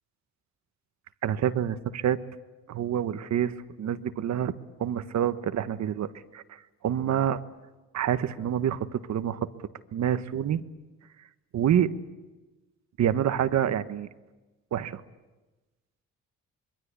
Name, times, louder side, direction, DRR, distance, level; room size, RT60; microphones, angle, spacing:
voice 1, 1.2-2.2 2.7-4.5 4.8-7.4 7.9-9.4 9.9-10.6 11.5-11.9 13.0-14.1 14.7-15.0, right 10 dB, 65° right, 11 dB, 1.3 m, -27 dB
26.0 x 22.0 x 8.3 m, 1.2 s
cardioid pair, 90°, 30 cm